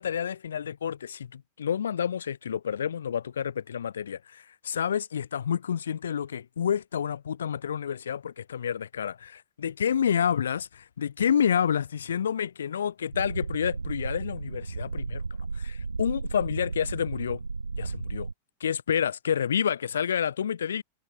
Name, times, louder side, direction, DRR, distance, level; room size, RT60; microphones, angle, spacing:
voice 1, 0.0-15.2 15.5-17.4 17.8-18.3 18.6-20.8, left 8 dB, 65° left, 0.4 m, -29 dB
sound 1, 13.1-18.3, right 4 dB, 80° right, 0.4 m, -34 dB
figure-of-eight pair, 90°, 0 cm